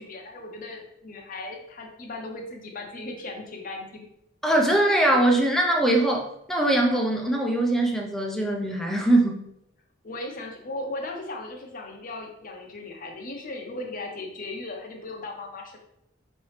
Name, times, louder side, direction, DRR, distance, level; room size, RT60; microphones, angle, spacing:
voice 1, 0.0-4.1 10.0-15.8, left 2 dB, 45° left, 2 dB, 0.8 m, -37 dB
voice 2, 4.4-9.4, right 1 dB, ahead, 0 dB, 0.6 m, -22 dB
5.2 x 3.1 x 3.2 m, 0.81 s
head